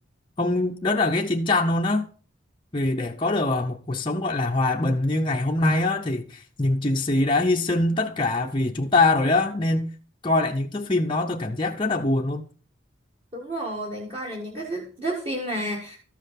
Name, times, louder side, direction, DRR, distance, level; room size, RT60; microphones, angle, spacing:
voice 1, 0.4-2.1 2.7-9.9 10.2-12.5, left 2 dB, 25° left, 0.7 m, -23 dB
voice 2, 13.3-16.0, right 1 dB, 25° right, 1.8 m, -31 dB
13.5 x 5.6 x 5.8 m
head